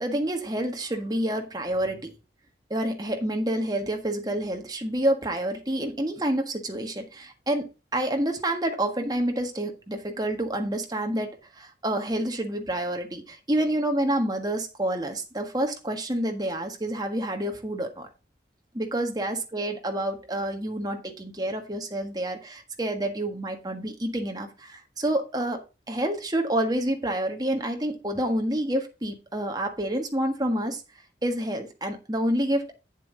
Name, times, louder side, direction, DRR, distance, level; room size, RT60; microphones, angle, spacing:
voice 1, 0.0-2.1 2.7-18.1 18.7-25.6 25.9-30.8 31.2-32.7, right 1 dB, 20° right, 1.5 m, -28 dB
9.4 x 7.4 x 4.0 m
head